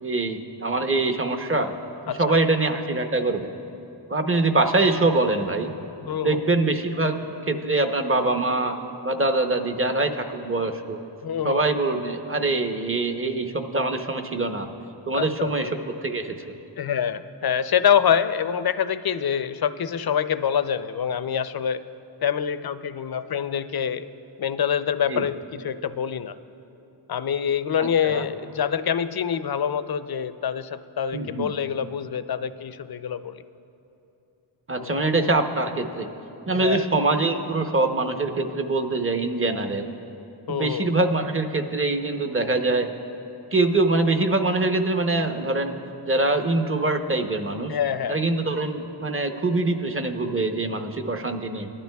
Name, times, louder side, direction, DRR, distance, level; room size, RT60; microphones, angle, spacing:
voice 1, 0.0-1.7 2.2-3.5 4.1-5.7 6.2-8.8 9.0-11.0 11.4-14.7 15.1-16.4 25.1-25.3 27.8-28.2 31.1-31.5 34.7-36.1 36.5-39.9 40.5-42.9 43.5-45.8 46.1-47.8 48.1-51.7, right 2 dB, 25° right, 6 dB, 0.8 m, -24 dB
voice 2, 2.1-2.4 6.0-6.5 11.2-11.6 15.1-15.7 16.8-21.8 22.2-24.1 24.4-26.3 27.1-33.4 34.8-35.0 36.5-36.9 40.5-40.9 47.7-48.2, left 8 dB, 50° left, 12 dB, 0.5 m, -26 dB
20.0 x 12.0 x 2.3 m, 2.9 s
wide cardioid pair, 55°, 48 cm